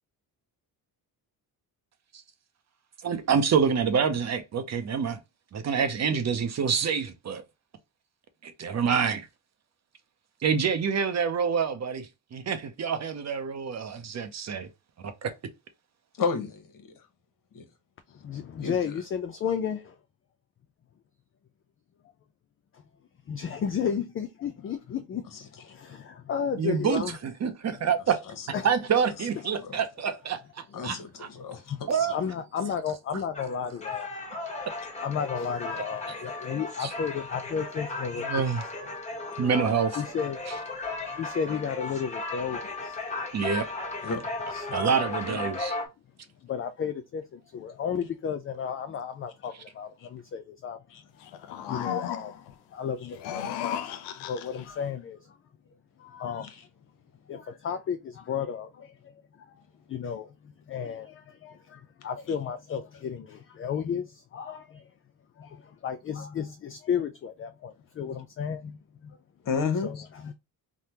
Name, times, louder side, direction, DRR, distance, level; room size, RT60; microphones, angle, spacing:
voice 1, 3.0-5.2 5.5-7.4 8.4-9.3 10.4-14.7 15.0-15.3 26.6-28.2 28.6-31.3 31.9-32.1 36.8-36.9 38.2-38.6 39.4-40.0 40.5-40.6 43.3-43.6 44.7-45.8, right 6 dB, 40° right, 0.6 m, -27 dB
voice 2, 16.2-16.9 17.5-17.6 18.6-19.0 29.6-29.8 30.7-31.6 31.9-32.0 44.0-44.2 50.9-51.0 56.4-56.6 69.4-70.0, left 5 dB, 50° left, 0.9 m, -31 dB
voice 3, 18.2-19.9 23.3-27.2 27.7-27.9 28.5-28.7 31.4-31.8 32.1-34.1 35.0-38.4 38.7-38.9 40.0-43.0 44.5-44.8 45.3-45.6 46.4-50.9 51.5-52.4 52.7-53.9 54.3-55.4 56.0-56.5 57.3-59.1 59.5-59.6 59.9-64.9 65.4-69.2 69.8-70.3, left 7 dB, 35° left, 0.4 m, -33 dB
sound 1, 33.3-45.9, left 3 dB, 15° left, 1.1 m, -35 dB
sound 2, 51.2-52.5 53.1-54.7, left 9 dB, 85° left, 0.5 m, -35 dB
3.3 x 2.1 x 2.8 m
cardioid pair, 75°, 40 cm